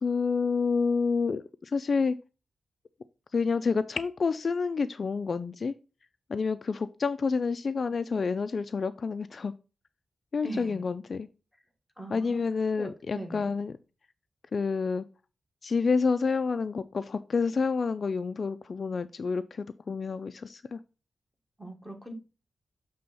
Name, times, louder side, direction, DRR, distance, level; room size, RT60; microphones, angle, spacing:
voice 1, 0.0-2.1 3.3-5.7 6.3-9.5 10.3-11.3 12.1-13.7 14.5-15.1 15.6-20.8, left 5 dB, 45° left, 0.3 m, -28 dB
voice 2, 10.4-10.8 12.0-12.4 12.8-13.5 21.6-22.1, right 1 dB, ahead, 1.4 m, -40 dB
6.8 x 3.4 x 5.3 m
wide cardioid pair, 155°, 0 cm